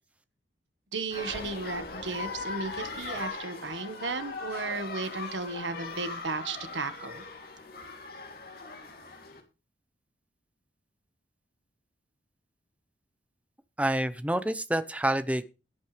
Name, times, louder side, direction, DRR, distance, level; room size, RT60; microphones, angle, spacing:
voice 1, 0.9-7.2, right 3 dB, 85° right, 10 dB, 1.6 m, -34 dB
sound 1, 1.1-9.4, left 4 dB, 55° left, 3.2 m, -39 dB
voice 2, 13.8-15.4, right 1 dB, 5° right, 11 dB, 0.8 m, -28 dB
17.0 x 9.0 x 3.4 m, 0.31 s
head